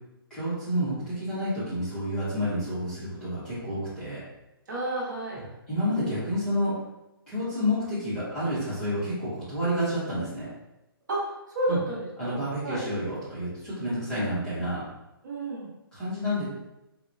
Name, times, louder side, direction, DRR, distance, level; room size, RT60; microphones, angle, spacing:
voice 1, 0.3-4.2 5.7-6.7 7.3-10.5 11.7-11.8 12.2-14.8 15.9-16.4, equal, 5° left, -13 dB, 0.7 m, -29 dB
voice 2, 4.7-5.4 5.9-6.1 11.1-12.8 15.2-15.7, right 1 dB, 45° right, -4 dB, 1.0 m, -32 dB
4.5 x 2.0 x 2.5 m, 0.94 s
hypercardioid pair, 180°, 13 cm